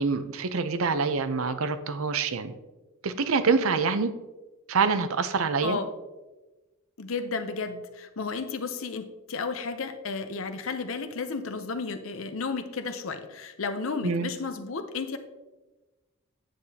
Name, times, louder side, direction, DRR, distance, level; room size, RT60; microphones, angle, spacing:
voice 1, 0.0-2.5 3.0-4.1 4.7-5.8 14.0-14.3, right 4 dB, 70° right, 11 dB, 0.6 m, -26 dB
voice 2, 7.0-15.2, left 4 dB, 65° left, 9 dB, 0.7 m, -33 dB
9.1 x 8.1 x 2.8 m, 1.1 s
head